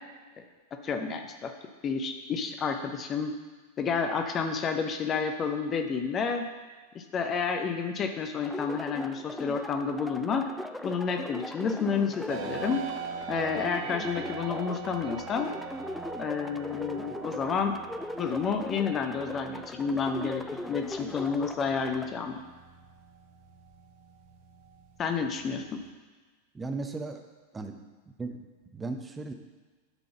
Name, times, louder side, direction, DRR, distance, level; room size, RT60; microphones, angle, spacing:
voice 1, 0.8-1.5 1.8-3.3 3.8-6.4 6.9-10.4 10.8-12.8 13.3-15.5 16.2-17.8 18.2-22.4 25.0-25.8, left 5 dB, 25° left, 5 dB, 0.8 m, -30 dB
sound 1, 8.4-22.1, left 1 dB, 5° left, 0.3 m, -39 dB
sound 2, 12.3-25.9, right 6 dB, 50° right, 0.9 m, -43 dB
voice 2, 26.5-27.2 27.5-27.8 28.2-28.4 28.7-29.3, right 3 dB, 15° right, 5 dB, 0.8 m, -35 dB
10.5 x 3.9 x 5.8 m, 1.3 s
figure-of-eight pair, 90°, 0 cm